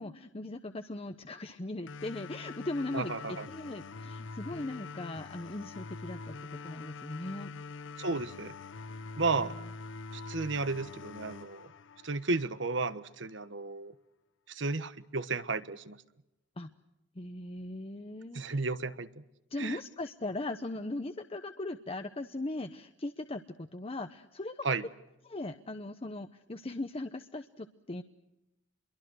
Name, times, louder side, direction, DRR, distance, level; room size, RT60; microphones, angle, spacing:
voice 1, 0.0-6.4 6.6-7.5 9.3-9.6 16.6-16.7 17.2-18.7 19.5-24.8 25.2-28.0, left 2 dB, 30° left, 8 dB, 0.9 m, -39 dB
sound 1, 1.9-12.8, left 4 dB, 85° left, 0.8 m, -45 dB
voice 2, 2.9-3.5 8.0-8.5 9.2-9.5 10.3-11.7 12.0-13.9 14.5-16.0 18.3-19.2 19.6-19.8 24.6-24.8, right 3 dB, 70° right, 13 dB, 1.2 m, -33 dB
27.5 x 23.0 x 6.3 m, 0.92 s
head